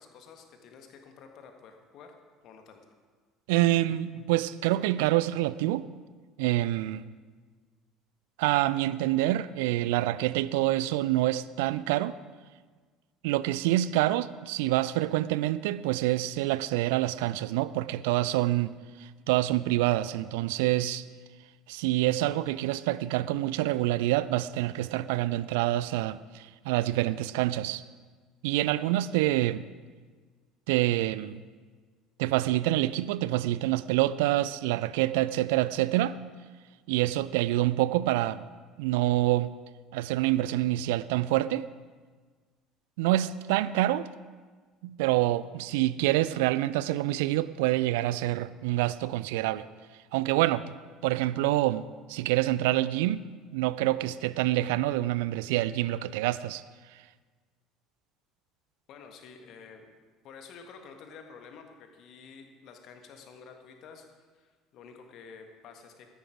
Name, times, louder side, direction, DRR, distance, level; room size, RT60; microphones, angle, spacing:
voice 1, 0.0-2.1 2.4-2.8 58.9-59.9 60.2-66.1, left 5 dB, 50° left, 1.6 m, -50 dB
voice 2, 3.5-5.9 6.4-7.1 8.4-12.1 13.2-18.7 19.0-21.0 21.7-27.8 28.4-29.6 30.7-31.4 32.2-36.2 36.9-38.4 38.8-39.5 39.9-41.7 43.0-44.1 44.8-49.7 50.1-50.7 51.0-53.3 53.5-56.6, right 15 dB, 65° right, 0.4 m, -27 dB
14.0 x 10.5 x 4.9 m
figure-of-eight pair, 60°, 0 cm